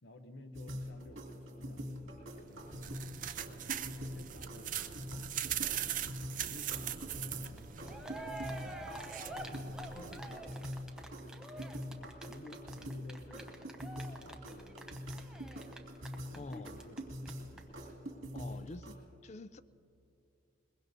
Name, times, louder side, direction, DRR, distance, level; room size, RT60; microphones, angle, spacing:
voice 1, 0.0-3.3 3.9-5.6 6.4-8.3 9.9-11.2 11.9-13.9 14.2-15.3 16.3-17.0 17.4-17.8, left 1 dB, 60° left, 0.8 m, -54 dB
sound 1, 0.5-19.0, equal, 75° right, 2.2 m, -45 dB
sound 2, 2.5-10.4, right 10 dB, 40° right, 0.5 m, -41 dB
Cheering, 7.6-7.7 7.8-17.0 17.2-17.3 17.6-17.7, right 1 dB, 5° right, 0.8 m, -47 dB
voice 2, 16.3-16.8 18.3-19.0 19.2-19.6, left 2 dB, 35° left, 0.3 m, -46 dB
22.5 x 21.0 x 2.7 m
head